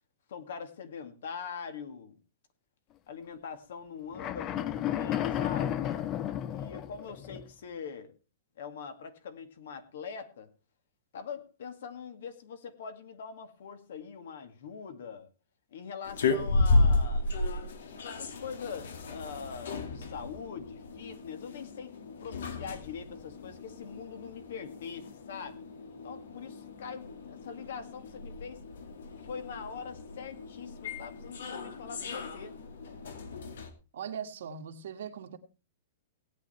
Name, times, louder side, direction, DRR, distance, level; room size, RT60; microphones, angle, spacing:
voice 1, 0.3-2.2 3.1-5.9 6.4-8.1 8.6-10.5 11.1-15.3 15.7-17.3 18.0-21.9 22.2-25.7 26.0-28.6 29.2-32.6, left 6 dB, 65° left, 2.2 m, -43 dB
sound 1, 4.1-7.5, left 11 dB, 20° left, 0.6 m, -32 dB
sound 2, 16.0-33.7, left 2 dB, 85° left, 2.5 m, -33 dB
voice 2, 33.9-35.4, right 7 dB, 70° right, 1.7 m, -40 dB
17.5 x 9.2 x 4.4 m
supercardioid pair, 175°, 0 cm